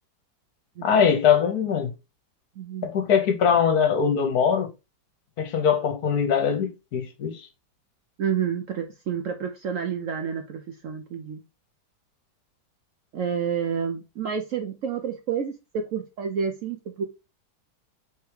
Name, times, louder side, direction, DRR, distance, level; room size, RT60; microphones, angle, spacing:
voice 1, 0.8-1.9 2.8-4.7 5.4-7.4, left 7 dB, 65° left, 1.3 m, -22 dB
voice 2, 2.6-2.9 8.2-11.4 13.1-17.0, right 7 dB, 65° right, 0.8 m, -29 dB
4.6 x 3.4 x 3.2 m
omnidirectional pair, 1.8 m